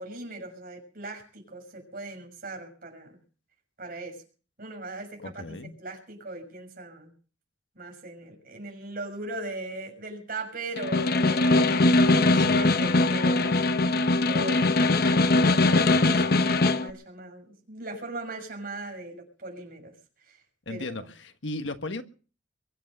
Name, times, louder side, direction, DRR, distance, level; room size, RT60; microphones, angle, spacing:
voice 1, 0.0-3.2 3.8-4.2 4.6-7.1 7.7-13.8 14.2-14.9 15.3-19.9 20.2-20.4 20.7-21.1, right 2 dB, 50° right, 6.4 m, -39 dB
voice 2, 5.2-5.7 12.2-12.6 20.7-22.0, left 2 dB, 75° left, 1.5 m, -36 dB
Snare drum, 10.8-16.9, left 2 dB, 55° left, 0.9 m, -21 dB
23.0 x 8.4 x 6.7 m
head